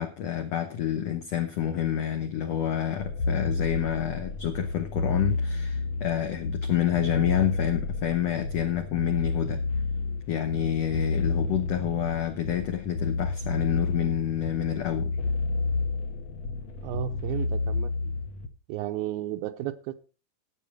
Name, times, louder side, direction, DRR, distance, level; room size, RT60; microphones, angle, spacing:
voice 1, 0.0-9.6 10.3-15.1, left 10 dB, 85° left, 1.4 m, -28 dB
sound 1, 3.0-18.5, left 3 dB, 65° left, 1.7 m, -30 dB
voice 2, 16.8-18.1 18.7-19.9, right 12 dB, 80° right, 2.6 m, -33 dB
11.5 x 8.5 x 4.9 m
omnidirectional pair, 4.3 m